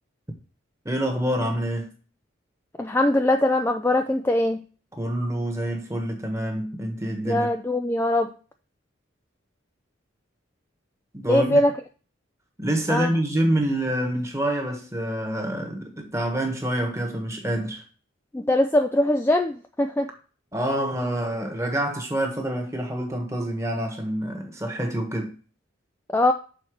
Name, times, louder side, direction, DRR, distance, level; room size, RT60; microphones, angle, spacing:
voice 1, 0.8-1.9 4.9-7.5 11.1-11.6 12.6-17.8 20.5-25.3, right 1 dB, 15° right, 1.4 m, -27 dB
voice 2, 2.8-4.6 7.3-8.3 11.3-11.7 12.9-13.1 18.3-20.1 26.1-26.3, left 1 dB, 10° left, 0.3 m, -21 dB
6.5 x 4.2 x 6.3 m
head